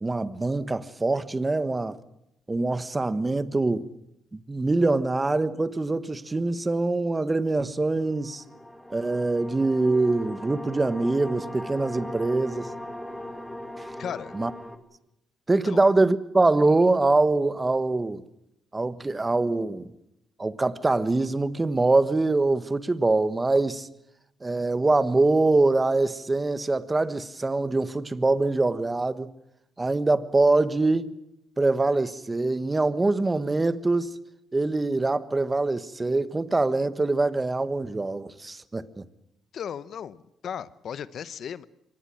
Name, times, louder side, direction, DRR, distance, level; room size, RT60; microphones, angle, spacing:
voice 1, 0.0-2.0 2.5-3.9 4.3-8.4 8.9-12.7 14.3-14.5 15.5-18.2 18.7-19.9 20.4-23.9 24.4-29.3 29.8-31.1 31.6-34.1 34.5-39.0, right 2 dB, 20° right, 1.3 m, -24 dB
sound 1, 7.9-14.8, left 1 dB, 5° left, 2.7 m, -39 dB
voice 2, 14.0-14.3 15.6-15.8 39.5-41.6, left 8 dB, 60° left, 0.9 m, -36 dB
24.5 x 18.5 x 7.7 m
cardioid pair, 90°, 0 cm